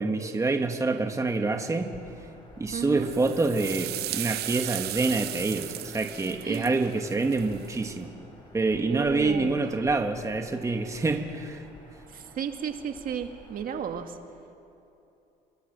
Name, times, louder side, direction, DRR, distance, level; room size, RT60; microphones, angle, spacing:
voice 1, 0.0-1.9 2.6-8.1 8.5-11.6, right 3 dB, 20° right, 5 dB, 1.7 m, -27 dB
Bird vocalization bird call bird song, 1.8-14.0, left 1 dB, 25° left, 7.1 m, -52 dB
voice 2, 2.7-3.1 6.4-6.8 8.9-9.6 12.1-14.2, right 8 dB, 55° right, 6 dB, 1.8 m, -33 dB
sound 1, 3.0-7.8, right 15 dB, 75° right, 0.6 m, -36 dB
29.0 x 23.5 x 6.9 m, 2.8 s
cardioid pair, 110°, 17 cm